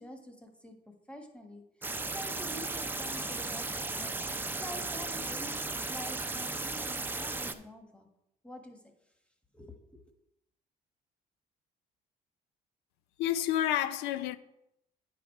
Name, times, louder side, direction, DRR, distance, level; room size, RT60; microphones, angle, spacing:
voice 1, 0.0-1.6 2.1-5.5 5.9-8.1 8.4-8.8 9.5-10.1, equal, 5° left, 1.3 m, -47 dB
sound 1, 1.8-7.5, right 3 dB, 10° right, 0.6 m, -35 dB
voice 2, 13.2-14.4, left 11 dB, 90° left, 0.5 m, -29 dB
9.9 x 5.0 x 4.6 m
cardioid pair, 110°, 17 cm